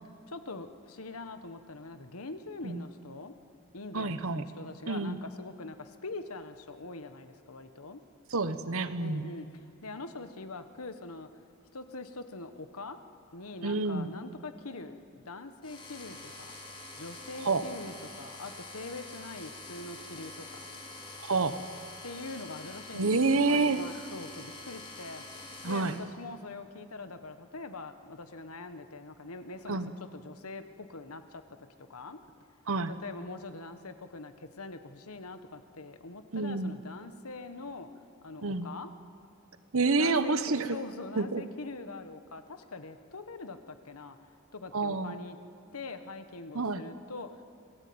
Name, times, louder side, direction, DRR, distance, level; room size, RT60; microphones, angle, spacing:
voice 1, 0.3-3.3 3.7-8.0 9.0-9.5 9.8-11.3 11.7-13.0 13.3-16.5 17.0-20.6 22.0-29.8 30.1-31.4 31.8-32.2 33.0-37.9 38.2-38.9 40.0-44.2 44.5-45.4 45.7-47.4, left 3 dB, 85° left, 9 dB, 1.3 m, -43 dB
voice 2, 3.9-4.4 4.9-5.2 8.3-9.3 13.6-14.1 17.4-17.7 21.2-21.6 22.9-23.8 25.6-26.0 29.7-29.9 32.7-32.9 36.3-36.8 38.4-38.7 39.7-40.8 41.2-41.4 44.7-45.1 46.5-46.8, right 3 dB, 70° right, 12 dB, 1.0 m, -28 dB
sound 1, 15.6-26.0, left 2 dB, 20° left, 3.1 m, -46 dB
26.0 x 16.5 x 8.7 m, 2.5 s
head